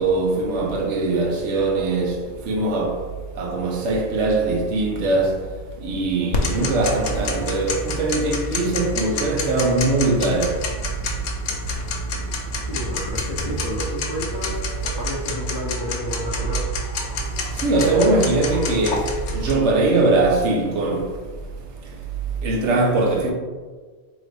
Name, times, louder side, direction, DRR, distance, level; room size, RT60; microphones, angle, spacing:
voice 1, 0.0-3.0 3.4-5.4 5.8-10.6 17.5-21.1 22.4-23.3, right 2 dB, 90° right, 1.0 m, -21 dB
Tick-tock, 6.3-19.5, left 1 dB, 80° left, 0.9 m, -28 dB
voice 2, 12.7-16.6, equal, 35° left, 0.4 m, -31 dB
3.9 x 3.1 x 3.3 m
omnidirectional pair, 1.2 m